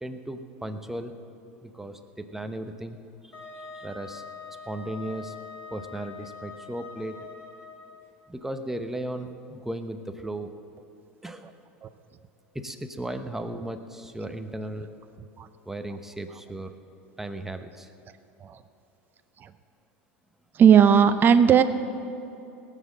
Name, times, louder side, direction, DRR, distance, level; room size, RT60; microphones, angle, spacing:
voice 1, 0.0-1.2 1.6-3.0 3.2-4.2 4.7-5.3 5.7-7.2 8.3-10.5 11.2-11.5 12.5-14.9 15.7-16.7 17.2-17.9, right 1 dB, 5° right, 7 dB, 0.9 m, -36 dB
Wind instrument woodwind instrument, 3.3-8.0, left 5 dB, 30° left, 3.6 m, -43 dB
voice 2, 20.5-21.6, right 8 dB, 30° right, 10 dB, 0.6 m, -17 dB
18.0 x 7.4 x 7.5 m, 2.8 s
hypercardioid pair, 100°, 6 cm